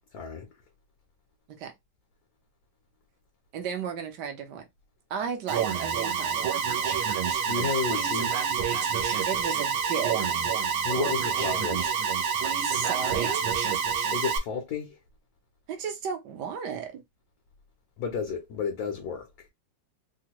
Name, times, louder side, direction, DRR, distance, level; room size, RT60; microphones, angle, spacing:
voice 1, 0.1-0.5 7.4-8.4 10.8-11.9 14.1-15.0 18.0-19.5, left 5 dB, 65° left, 0.9 m, -32 dB
voice 2, 3.5-4.7 5.1-6.5 9.3-10.5 12.6-13.5 15.7-17.0, right 7 dB, 65° right, 1.1 m, -34 dB
Alarm, 5.5-14.4, right 7 dB, 85° right, 1.6 m, -27 dB
3.5 x 2.1 x 2.9 m
omnidirectional pair, 2.2 m